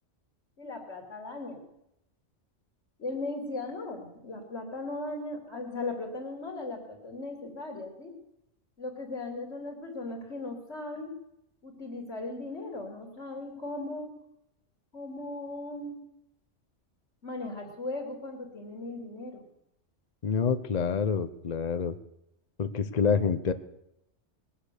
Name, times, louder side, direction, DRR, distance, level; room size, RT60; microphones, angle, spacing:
voice 1, 0.6-1.6 3.0-8.1 8.8-11.1 11.6-14.2 14.9-16.0 17.2-19.4, left 2 dB, 70° left, 1 dB, 2.8 m, -37 dB
voice 2, 20.2-21.9 22.6-23.5, left 6 dB, 40° left, 11 dB, 0.8 m, -27 dB
20.5 x 7.7 x 6.6 m, 0.82 s
omnidirectional pair, 1.3 m